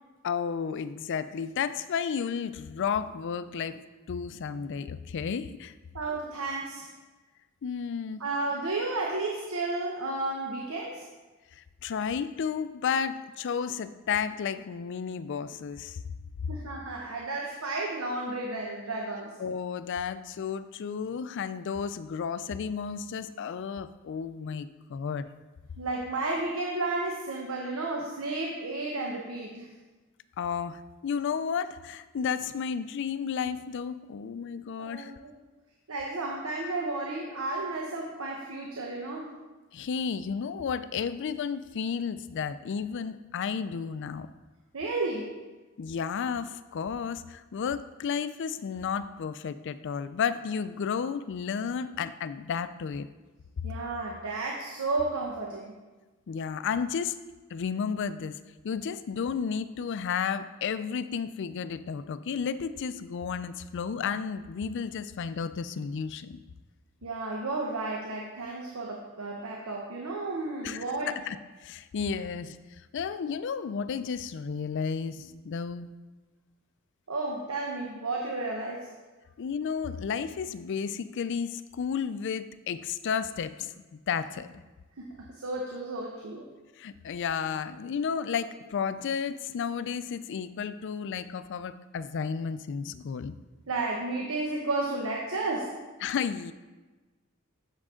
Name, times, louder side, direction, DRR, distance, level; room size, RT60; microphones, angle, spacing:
voice 1, 0.2-5.7 7.6-8.2 11.5-16.0 16.4-16.5 19.4-25.3 30.4-35.1 39.7-44.3 45.8-53.1 56.3-57.2 57.5-58.4 58.6-66.4 70.6-71.4 71.6-75.9 79.4-84.5 86.8-93.3 96.0-96.5, left 6 dB, 60° left, 14 dB, 0.4 m, -32 dB
voice 2, 5.9-6.9 8.2-11.0 16.5-19.3 25.8-29.7 34.8-35.3 35.9-39.3 44.7-45.3 53.6-55.7 67.0-71.1 77.1-78.9 85.0-86.4 93.7-95.7, right 2 dB, 80° right, 0 dB, 1.0 m, -32 dB
7.5 x 7.3 x 3.7 m, 1.2 s
head